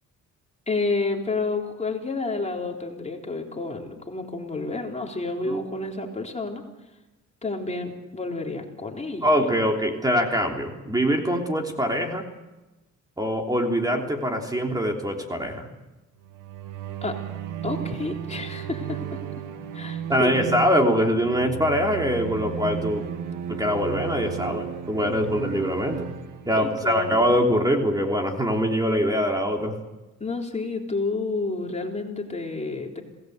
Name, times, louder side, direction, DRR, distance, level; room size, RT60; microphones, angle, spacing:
voice 1, 0.7-6.6 7.4-9.6 17.0-17.2 17.6-19.2 19.7-20.6 26.6-27.2 30.2-33.0, left 3 dB, 20° left, 1 dB, 3.7 m, -30 dB
voice 2, 9.2-12.2 13.2-15.7 20.1-23.1 23.5-26.1 26.4-29.7, equal, 10° right, 2 dB, 3.2 m, -23 dB
sound 1, 16.2-27.2, right 9 dB, 85° right, 1.8 m, -34 dB
26.5 x 18.0 x 8.1 m, 1.1 s
cardioid pair, 90°, 30 cm